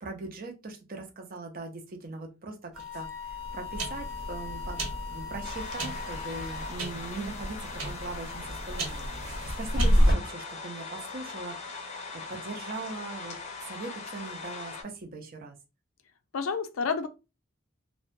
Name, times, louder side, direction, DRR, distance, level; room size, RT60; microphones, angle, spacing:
voice 1, 0.0-4.8 5.1-13.4 13.7-15.5, right 3 dB, 45° right, 0.5 m, -40 dB
Wind instrument woodwind instrument, 2.7-6.7, left 6 dB, 5° right, 0.8 m, -40 dB
sound 1, 2.7-10.1, equal, 90° right, 1.2 m, -30 dB
sound 2, 5.4-14.8, left 4 dB, 35° left, 0.5 m, -40 dB
voice 2, 9.8-10.2 16.3-17.1, left 5 dB, 85° left, 0.4 m, -31 dB
2.6 x 2.1 x 2.5 m
head